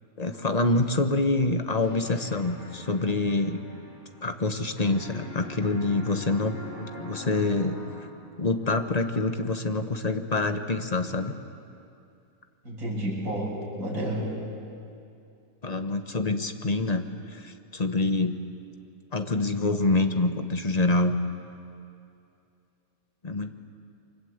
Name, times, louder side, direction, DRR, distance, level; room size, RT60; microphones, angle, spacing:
voice 1, 0.2-3.6 4.2-7.8 8.4-11.3 15.6-17.0 17.3-18.4 19.1-21.2 23.2-23.5, left 2 dB, 25° left, 7 dB, 1.2 m, -26 dB
sound 1, 1.8-4.5 4.8-8.4, equal, 60° left, 7.3 m, -43 dB
voice 2, 12.6-14.3, right 1 dB, 60° right, -4 dB, 7.2 m, -30 dB
29.0 x 24.5 x 8.2 m, 2.6 s
omnidirectional pair, 1.7 m